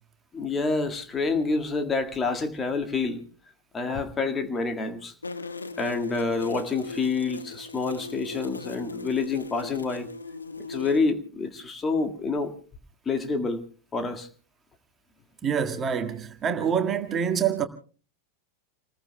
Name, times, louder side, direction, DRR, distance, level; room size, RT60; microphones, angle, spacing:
voice 1, 0.3-3.2 3.7-5.1 5.8-10.1 10.7-12.6 13.1-13.6 13.9-14.3, left 4 dB, 20° left, 1.8 m, -28 dB
sound 1, 5.2-11.0, left 4 dB, 80° left, 1.3 m, -38 dB
voice 2, 15.4-17.6, right 7 dB, 25° right, 1.8 m, -26 dB
30.0 x 20.5 x 2.2 m
figure-of-eight pair, 90°, 0 cm